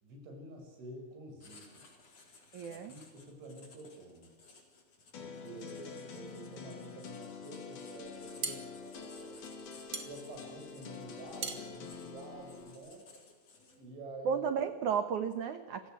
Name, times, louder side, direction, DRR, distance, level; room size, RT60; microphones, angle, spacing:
voice 1, 0.0-1.9 2.7-4.3 5.2-9.4 10.1-13.1 13.7-14.5, right 2 dB, 75° right, 3 dB, 8.6 m, -49 dB
Writing, 1.4-14.0, left 3 dB, 35° left, 4.7 m, -58 dB
voice 2, 2.5-2.9 14.3-15.9, right 7 dB, 90° right, 9 dB, 1.7 m, -33 dB
sound 1, 5.1-12.8, left 5 dB, 55° left, 4.5 m, -47 dB
sound 2, 8.0-13.0, right 5 dB, 40° right, 1.8 m, -43 dB
29.0 x 17.0 x 9.3 m, 1.3 s
omnidirectional pair, 5.4 m